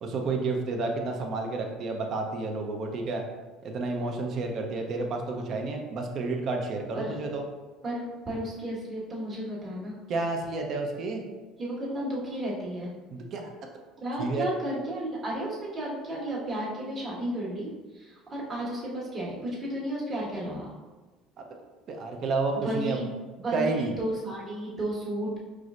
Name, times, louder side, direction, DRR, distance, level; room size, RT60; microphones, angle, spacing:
voice 1, 0.0-3.2 3.6-7.4 10.1-11.2 13.1-13.5 14.2-14.5 21.9-23.0 23.5-23.9, right 3 dB, 55° right, 2 dB, 0.7 m, -30 dB
voice 2, 7.8-9.9 11.6-12.9 14.0-20.7 22.6-23.1 23.4-25.4, right 1 dB, 35° right, -5 dB, 1.5 m, -33 dB
4.8 x 3.2 x 2.5 m, 1.3 s
supercardioid pair, 100°, 0 cm